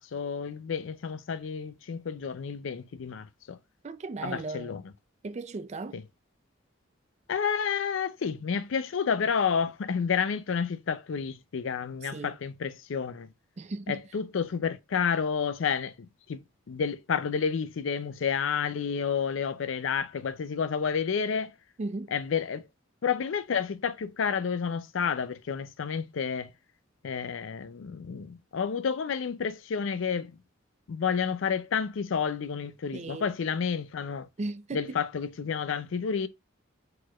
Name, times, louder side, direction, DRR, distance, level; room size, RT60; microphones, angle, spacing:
voice 1, 0.0-3.6 4.2-4.8 5.9-6.0 7.3-13.3 13.9-21.5 22.1-22.6 23.0-26.5 27.0-30.3 30.9-34.3 34.7-36.3, left 6 dB, 70° left, 0.4 m, -30 dB
voice 2, 3.8-4.8 5.2-6.0 12.0-12.4 13.6-14.0 21.8-22.1 32.9-33.3 34.4-35.0, right 3 dB, 35° right, 0.4 m, -36 dB
4.4 x 4.2 x 2.3 m
head